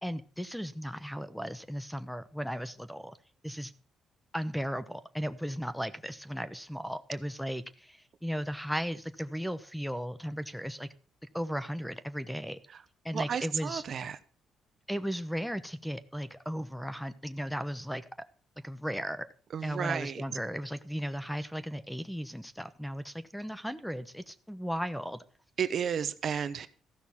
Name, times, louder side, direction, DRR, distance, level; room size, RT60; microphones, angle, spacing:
voice 1, 0.0-3.2 3.4-3.7 4.3-10.9 11.3-12.6 13.0-13.8 14.9-18.1 18.6-19.3 19.6-25.2, equal, ahead, 0.9 m, -36 dB
voice 2, 13.1-14.2 19.5-20.2 25.6-26.7, right 7 dB, 55° right, 1.0 m, -32 dB
14.5 x 6.1 x 7.2 m
cardioid pair, 90°, 0 cm